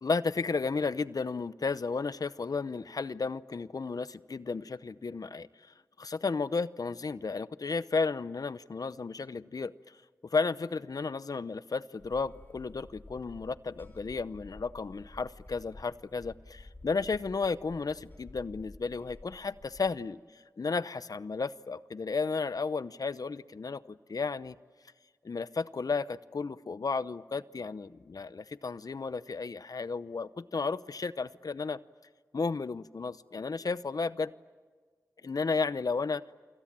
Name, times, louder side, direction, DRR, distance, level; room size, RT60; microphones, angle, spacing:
voice 1, 0.0-9.7 10.3-24.6 25.2-31.8 32.3-34.3 35.2-36.2, left 4 dB, 70° left, 16 dB, 0.7 m, -33 dB
sound 1, 12.0-19.9, left 1 dB, 30° left, 3.9 m, -52 dB
29.5 x 26.0 x 7.6 m, 1.5 s
wide cardioid pair, 80°, 7 cm